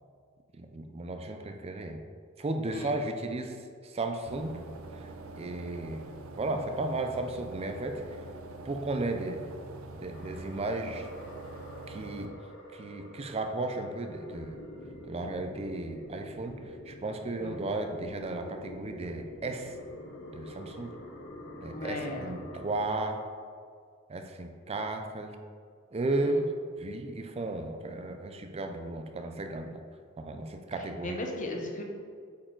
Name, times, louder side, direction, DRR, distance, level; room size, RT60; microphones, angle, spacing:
voice 1, 0.6-2.0 2.4-3.6 3.8-4.6 5.4-6.1 6.4-8.0 8.7-9.4 10.0-11.1 11.9-12.3 12.7-14.6 15.1-19.7 20.3-20.9 21.6-23.2 24.1-25.4 25.9-26.5 26.8-29.8 30.2-31.1, right 2 dB, 30° right, 5 dB, 0.4 m, -34 dB
sound 1, 4.3-12.3, right 2 dB, 75° right, 0.6 m, -45 dB
sound 2, 10.1-22.8, left 1 dB, 65° left, 1.0 m, -46 dB
voice 2, 17.4-17.8 21.7-22.3 26.2-26.4 30.8-31.8, left 2 dB, 40° left, 1 dB, 1.0 m, -37 dB
8.5 x 4.6 x 3.8 m, 2.1 s
head